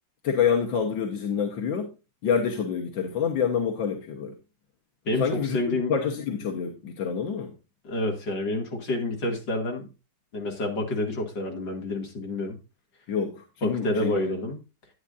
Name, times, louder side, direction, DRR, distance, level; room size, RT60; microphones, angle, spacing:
voice 1, 0.2-1.9 2.2-4.3 5.2-7.5 13.1-14.3, left 7 dB, 90° left, 2.0 m, -27 dB
voice 2, 5.0-5.9 7.8-9.9 10.3-12.6 13.6-14.6, left 2 dB, 70° left, 3.1 m, -28 dB
11.5 x 9.6 x 2.6 m
omnidirectional pair, 2.0 m